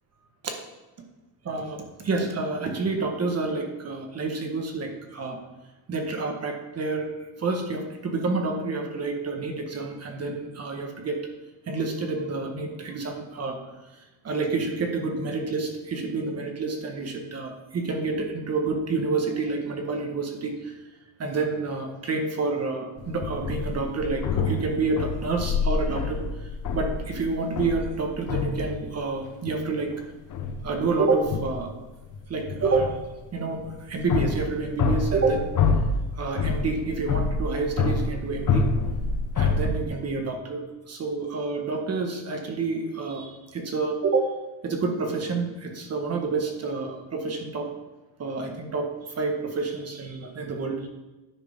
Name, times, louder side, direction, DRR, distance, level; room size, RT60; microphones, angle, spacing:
voice 1, 1.5-5.4 5.9-7.1 7.4-11.2 11.7-13.6 14.2-20.7 21.2-26.2 26.7-29.9 30.6-31.7 32.3-33.0 33.3-33.6 33.9-35.5 36.2-38.7 39.3-40.6 40.9-44.3 44.6-47.7 48.2-50.9, right 3 dB, 30° right, 4 dB, 1.3 m, -28 dB
sound 1, 23.0-29.0 29.3-30.0 30.3-31.8 32.1-39.9, left 4 dB, 40° left, 0.9 m, -27 dB
10.0 x 4.8 x 5.2 m, 1.1 s
cardioid pair, 140°, 48 cm